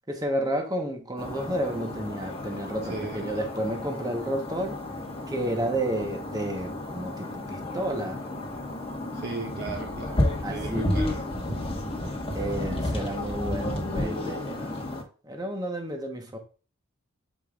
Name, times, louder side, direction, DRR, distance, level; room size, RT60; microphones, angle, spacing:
voice 1, 0.1-4.8 5.3-8.2 10.4-10.9 12.3-14.8 15.2-16.4, right 1 dB, 15° right, 1.2 m, -31 dB
sound 1, 1.2-15.0, left 1 dB, 25° left, 1.4 m, -32 dB
voice 2, 2.9-3.4 9.1-10.2 10.5-11.3, right 3 dB, 50° right, 0.9 m, -37 dB
7.7 x 5.1 x 2.5 m
head